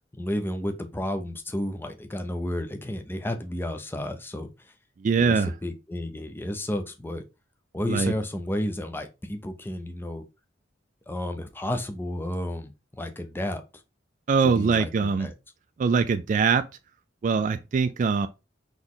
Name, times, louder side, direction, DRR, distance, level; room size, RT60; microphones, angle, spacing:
voice 1, 0.2-4.7 5.2-7.2 7.7-10.2 11.1-12.7 13.0-13.6 14.4-14.9 15.2-15.3, left 1 dB, 10° left, 0.5 m, -32 dB
voice 2, 5.0-5.5 7.9-8.1 14.3-15.3 15.8-16.6 17.2-18.3, right 5 dB, 40° right, 0.3 m, -22 dB
4.0 x 3.1 x 3.8 m
head